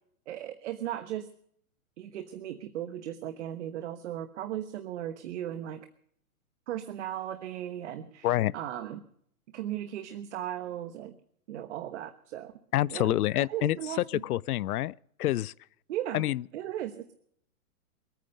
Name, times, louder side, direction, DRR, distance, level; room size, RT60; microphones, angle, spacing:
voice 1, 0.3-1.3 2.0-5.8 6.7-8.3 8.5-9.0 9.5-11.2 11.5-12.5 12.9-14.2 15.9-16.2 16.5-17.1, right 11 dB, 50° right, 1.2 m, -37 dB
voice 2, 8.2-8.5 12.7-15.5 16.1-16.4, left 14 dB, 80° left, 0.5 m, -28 dB
22.5 x 9.3 x 6.5 m
hypercardioid pair, 150°, 44 cm